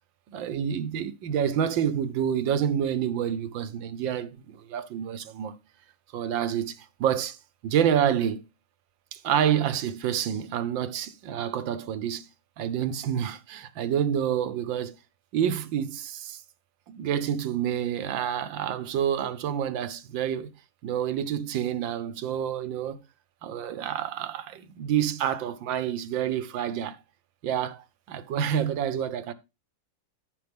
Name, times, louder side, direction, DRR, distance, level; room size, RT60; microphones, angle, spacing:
voice 1, 0.3-5.6 6.1-7.4 7.6-8.4 9.1-12.3 12.6-14.9 15.3-16.4 16.9-20.5 20.8-23.0 23.4-27.0 27.4-29.3, right 9 dB, 80° right, 1.6 m, -28 dB
13.5 x 5.7 x 3.5 m
omnidirectional pair, 2.0 m